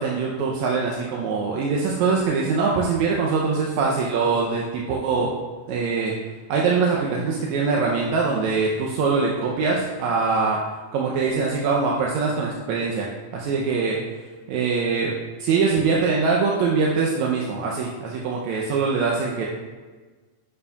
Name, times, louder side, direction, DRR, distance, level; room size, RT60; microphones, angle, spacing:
voice 1, 0.0-5.3 5.7-6.1 6.5-10.6 10.9-13.1 13.3-14.0 14.5-15.1 15.4-19.5, right 4 dB, 75° right, -2 dB, 1.9 m, -23 dB
10.5 x 6.9 x 2.4 m, 1.4 s
omnidirectional pair, 3.8 m